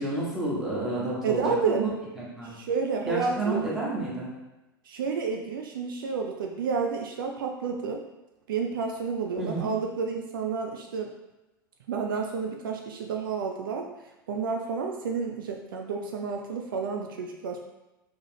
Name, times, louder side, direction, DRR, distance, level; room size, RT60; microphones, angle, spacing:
voice 1, 0.0-1.9 2.2-2.5 3.1-4.3 9.4-9.7, right 2 dB, 5° right, -7 dB, 1.3 m, -30 dB
voice 2, 1.2-1.8 2.4-3.6 4.9-8.0 8.5-11.1 11.9-13.9 14.3-17.6, right 5 dB, 65° right, 2 dB, 0.4 m, -30 dB
3.6 x 3.3 x 3.0 m, 1.0 s
figure-of-eight pair, 85°, 12 cm